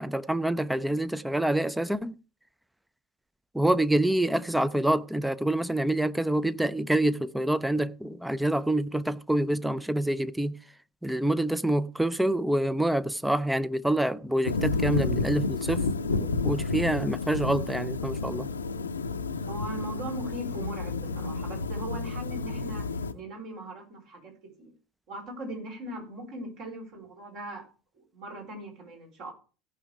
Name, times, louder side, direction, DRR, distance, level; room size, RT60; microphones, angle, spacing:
voice 1, 0.0-2.1 3.5-10.5 11.0-18.5, right 1 dB, 5° right, 0.6 m, -27 dB
sound 1, 14.4-23.1, left 4 dB, 80° left, 0.6 m, -31 dB
voice 2, 19.5-22.9 23.1-24.3 24.6-24.7 25.1-27.7 27.9-29.3, right 1 dB, 50° right, 4.6 m, -39 dB
16.5 x 5.7 x 4.9 m
figure-of-eight pair, 70°, 0 cm